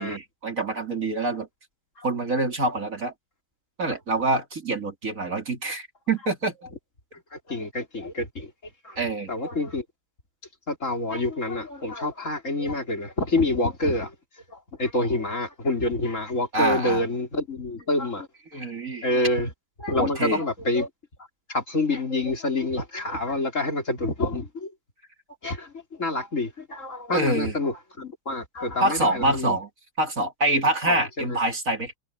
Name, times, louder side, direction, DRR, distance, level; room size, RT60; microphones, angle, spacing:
voice 1, 0.0-1.5 2.0-3.1 3.8-6.5 9.0-9.3 16.5-17.0 18.5-19.0 20.0-20.4 27.1-27.5 28.8-29.7 30.0-31.9, right 2 dB, 40° right, 3.2 m, -25 dB
voice 2, 7.3-8.5 8.8-9.0 9.3-9.8 10.7-14.1 14.5-18.6 19.0-19.5 19.8-20.9 21.5-24.7 25.4-29.6 30.9-31.4, left 2 dB, 35° left, 4.4 m, -27 dB
omnidirectional pair, 2.3 m